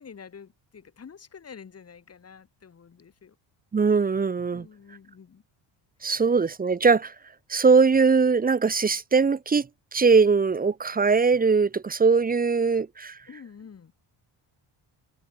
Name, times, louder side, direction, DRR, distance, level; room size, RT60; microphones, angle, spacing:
voice 1, 0.0-3.4 4.5-5.4 13.3-13.9, left 6 dB, 30° left, 3.0 m, -47 dB
voice 2, 3.7-4.6 6.0-7.1 7.5-13.2, right 5 dB, 20° right, 0.5 m, -21 dB
cardioid pair, 180°, 50 cm